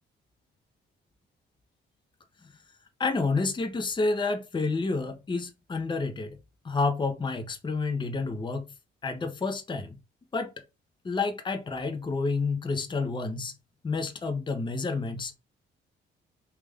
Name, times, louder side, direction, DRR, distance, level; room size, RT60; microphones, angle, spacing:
voice 1, 3.0-6.4 6.6-8.6 9.0-10.0 10.3-10.5 11.0-13.5 13.8-15.4, left 3 dB, 25° left, 0.7 m, -29 dB
3.4 x 2.5 x 3.4 m
cardioid pair, 90°, 20 cm